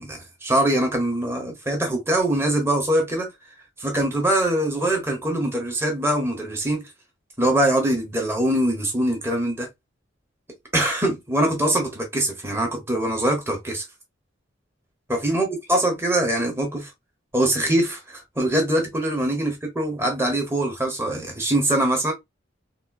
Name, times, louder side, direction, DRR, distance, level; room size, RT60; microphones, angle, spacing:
voice 1, 0.0-3.3 3.8-6.8 7.4-9.7 10.7-13.8 15.1-16.9 17.3-22.1, right 1 dB, 15° right, 1.0 m, -23 dB
3.7 x 2.2 x 2.2 m
head